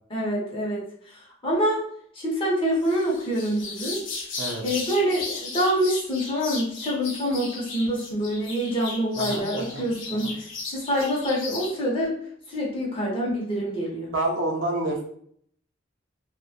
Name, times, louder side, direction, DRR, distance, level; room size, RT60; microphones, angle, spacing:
voice 1, 0.1-1.9 2.1-4.0 4.6-12.1 12.5-14.1, equal, 30° left, -4 dB, 0.7 m, -26 dB
sound 1, 2.8-11.7, left 3 dB, 75° left, 0.7 m, -36 dB
voice 2, 9.1-10.3 14.1-15.0, right 2 dB, 70° right, 1 dB, 0.5 m, -29 dB
2.8 x 2.1 x 2.3 m, 0.64 s
head